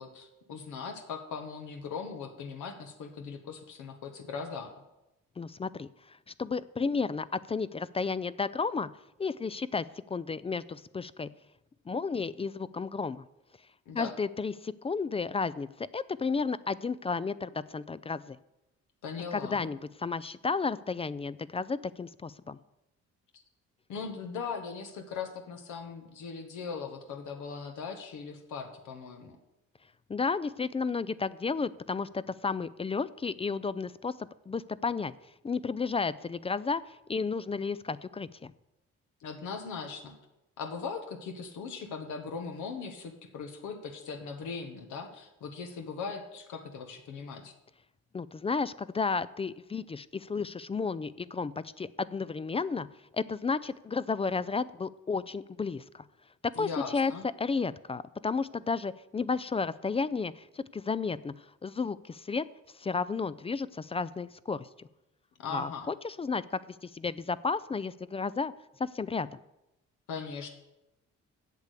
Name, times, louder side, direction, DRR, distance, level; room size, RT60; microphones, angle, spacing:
voice 1, 0.0-4.8 13.9-14.1 19.0-19.7 23.9-29.4 39.2-40.1 40.6-47.5 56.5-57.2 65.4-65.9 70.1-70.5, left 5 dB, 85° left, 4 dB, 1.3 m, -39 dB
voice 2, 5.4-8.9 9.2-11.3 11.9-13.2 13.9-18.4 19.3-22.6 30.1-34.1 34.5-35.1 35.4-38.5 48.1-52.9 53.1-56.0 56.6-57.1 57.4-61.3 61.6-62.5 62.8-64.9 65.5-68.5 68.8-69.4, left 4 dB, 20° left, 17 dB, 0.3 m, -32 dB
8.3 x 6.7 x 8.3 m, 0.94 s
cardioid pair, 90°, 30 cm